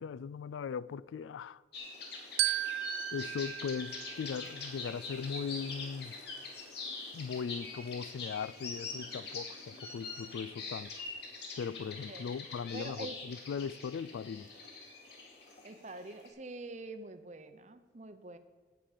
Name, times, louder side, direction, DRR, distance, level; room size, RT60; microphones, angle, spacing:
voice 1, 0.0-1.6 3.1-6.2 7.1-11.0 11.6-14.5, left 6 dB, 75° left, 0.3 m, -39 dB
sound 1, 1.7-16.3, left 3 dB, 55° left, 2.4 m, -44 dB
Glockenspiel, 2.4-4.9, right 15 dB, 85° right, 0.3 m, -36 dB
voice 2, 12.7-13.1 15.6-18.4, right 2 dB, 35° right, 0.7 m, -45 dB
17.5 x 5.9 x 5.0 m
head